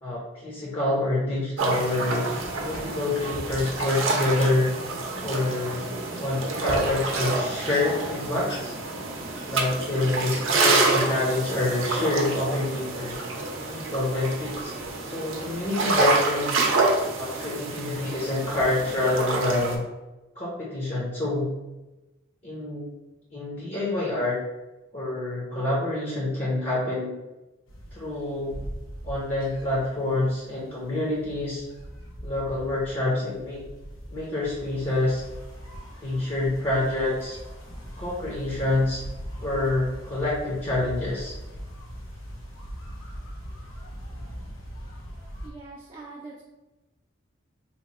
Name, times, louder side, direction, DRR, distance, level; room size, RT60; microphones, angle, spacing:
voice 1, 0.0-2.2 2.6-4.7 5.2-5.8 6.2-8.7 9.5-13.2 13.7-14.7 15.0-16.6 17.2-19.8 20.4-21.5 22.4-22.8 23.3-24.4 24.9-27.1 27.9-28.5 29.0-31.6 32.2-33.6 34.1-35.2 36.0-37.4 38.0-39.0 39.4-41.3, left 2 dB, 35° left, -6 dB, 0.7 m, -27 dB
sound 1, 1.6-19.7, right 3 dB, 75° right, 0.6 m, -28 dB
sound 2, 2.7-4.0 4.4-4.6 5.2-5.5 5.8-6.7 7.2-7.9 8.5-8.7 9.3-9.5, equal, 65° left, 1.3 m, -41 dB
sound 3, 27.7-45.5, equal, 80° left, 0.7 m, -41 dB
voice 2, 45.4-46.4, right 3 dB, 25° right, -5 dB, 0.4 m, -42 dB
2.9 x 2.2 x 4.0 m, 1.1 s
head